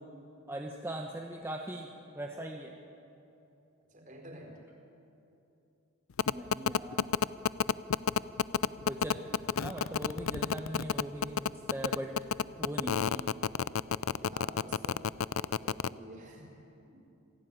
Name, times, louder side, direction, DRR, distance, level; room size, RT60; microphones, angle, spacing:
voice 1, 0.5-2.8 6.3-7.1 8.8-9.2 9.5-12.1 12.6-13.3, right 1 dB, 10° right, 0 dB, 1.2 m, -40 dB
voice 2, 3.8-4.6 8.9-9.2 14.2-15.0 15.5-16.5 16.8-17.0, right 1 dB, 40° right, 1 dB, 4.7 m, -50 dB
sound 1, 6.2-15.9, left 7 dB, 75° left, 0.5 m, -29 dB
27.5 x 17.5 x 9.1 m, 2.9 s
head